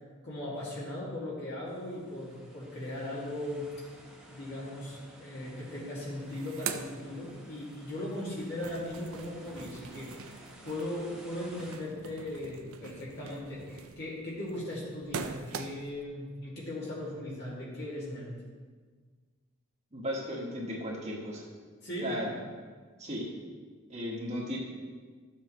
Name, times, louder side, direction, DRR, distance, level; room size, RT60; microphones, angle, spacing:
voice 1, 0.2-3.7 4.3-10.1 10.6-18.3 21.8-22.1, left 1 dB, 55° left, -7 dB, 2.1 m, -38 dB
sound 1, 1.7-11.8, equal, 5° right, 1.4 m, -54 dB
sound 2, 5.6-5.7 6.0-7.8 8.1-16.0, right 6 dB, 90° right, 0.5 m, -43 dB
voice 2, 19.9-21.4 22.0-22.4 23.0-23.3 23.9-24.6, equal, 35° right, -3 dB, 1.6 m, -35 dB
12.5 x 7.2 x 3.2 m, 1.5 s
head